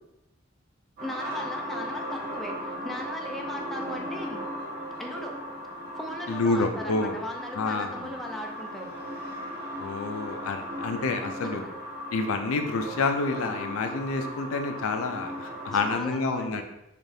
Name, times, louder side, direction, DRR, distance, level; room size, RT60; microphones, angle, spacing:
voice 1, 1.0-4.4 5.0-5.4 6.0-8.9 11.4-11.7 15.8-16.6, left 1 dB, ahead, 0 dB, 0.4 m, -38 dB
sound 1, 1.0-15.9, equal, 50° right, 0.8 m, -37 dB
voice 2, 6.3-7.2 7.5-7.9 9.8-11.6 12.1-16.6, left 3 dB, 90° left, 6 dB, 0.4 m, -28 dB
4.8 x 2.5 x 2.7 m, 0.90 s
head